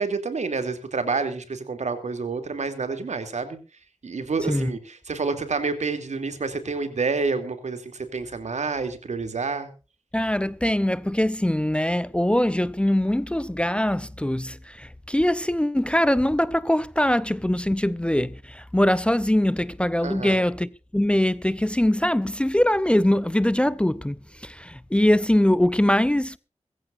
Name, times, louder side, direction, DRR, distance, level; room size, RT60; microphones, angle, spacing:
voice 1, 0.0-3.6 4.0-9.7 20.0-20.4, right 4 dB, 75° right, 2.7 m, -28 dB
voice 2, 10.1-26.4, left 1 dB, 10° left, 0.6 m, -22 dB
22.0 x 14.5 x 2.5 m
wide cardioid pair, 80°, 12 cm